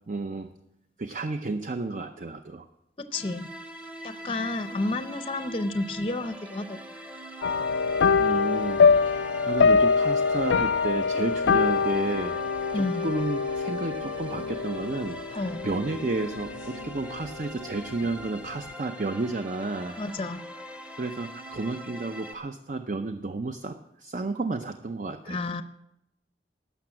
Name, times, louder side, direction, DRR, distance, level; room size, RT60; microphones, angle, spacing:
voice 1, 0.1-0.5 1.0-2.7 8.2-12.4 12.7-20.0 21.0-25.4, right 3 dB, 45° right, 8 dB, 0.6 m, -32 dB
voice 2, 3.0-3.5 4.0-6.8 12.7-13.1 15.3-15.7 20.0-20.4 25.3-25.6, left 2 dB, 30° left, 10 dB, 0.6 m, -31 dB
sound 1, 3.1-22.3, equal, 5° right, 0.8 m, -42 dB
sound 2, 7.4-17.0 17.3-17.6 18.0-18.1, left 5 dB, 90° left, 0.3 m, -24 dB
12.0 x 6.9 x 8.7 m, 0.83 s
head